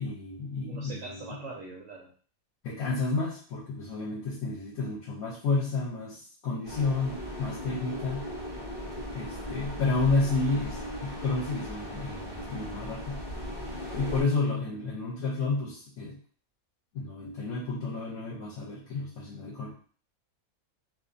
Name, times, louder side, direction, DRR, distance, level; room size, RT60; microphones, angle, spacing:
voice 1, 0.0-1.4 2.6-8.2 9.1-13.2 13.9-16.2 16.9-19.7, left 3 dB, 80° left, -5 dB, 1.1 m, -31 dB
voice 2, 0.7-2.1 18.9-19.0, right 4 dB, 70° right, -1 dB, 0.9 m, -42 dB
sound 1, 6.6-14.2, equal, 25° right, 0.6 m, -38 dB
2.6 x 2.5 x 2.4 m, 0.44 s
omnidirectional pair, 1.5 m